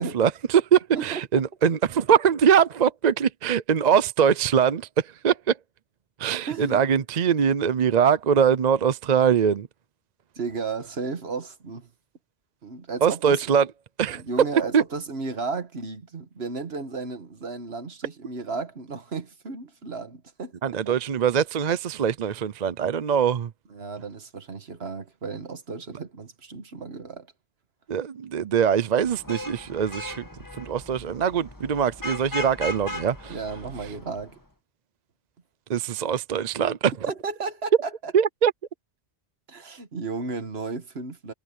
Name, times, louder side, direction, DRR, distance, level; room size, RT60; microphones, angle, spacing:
voice 1, 0.0-5.6 6.2-9.7 13.0-13.7 14.0-14.2 14.7-14.8 20.6-23.5 27.9-30.2 30.6-33.3 35.7-36.9 38.1-38.5, right 7 dB, 45° right, 0.7 m, -22 dB
voice 2, 0.9-1.4 6.5-6.8 10.4-11.9 12.6-13.4 14.1-21.0 23.7-27.3 33.3-34.4 37.1-38.1 39.5-41.3, right 4 dB, 65° right, 1.7 m, -34 dB
Vehicle horn car horn honking / Traffic noise roadway noise, 29.0-34.3, left 1 dB, 20° left, 2.0 m, -37 dB
omnidirectional pair, 1.1 m